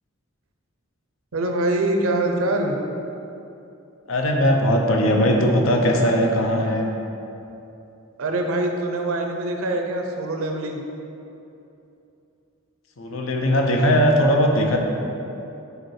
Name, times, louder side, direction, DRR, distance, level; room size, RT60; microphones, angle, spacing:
voice 1, 1.3-2.8 8.2-10.8, right 1 dB, 85° right, 3 dB, 0.6 m, -24 dB
voice 2, 4.1-6.9 13.0-14.8, equal, 70° left, 2 dB, 0.7 m, -19 dB
5.0 x 4.1 x 4.7 m, 2.8 s
head